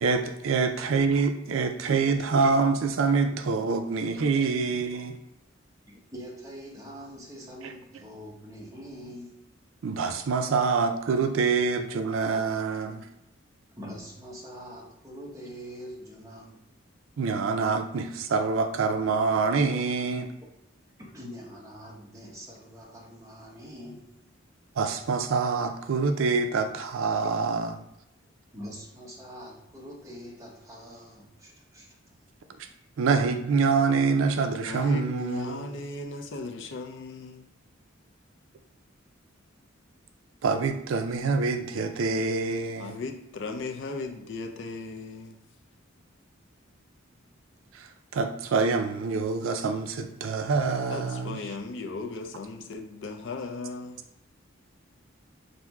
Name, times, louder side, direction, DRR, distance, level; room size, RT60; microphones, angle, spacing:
voice 1, 0.0-5.2 7.6-7.7 9.8-13.1 17.2-20.3 24.8-27.8 33.0-35.7 40.4-43.0 47.7-51.4, right 4 dB, 80° right, 8 dB, 0.4 m, -26 dB
voice 2, 5.9-9.4 13.7-16.7 21.0-24.3 28.5-32.0, equal, 15° right, -2 dB, 0.9 m, -44 dB
voice 3, 34.6-37.5 42.8-45.4 50.9-54.0, left 3 dB, 65° left, 5 dB, 0.5 m, -37 dB
5.8 x 2.7 x 2.2 m, 0.87 s
head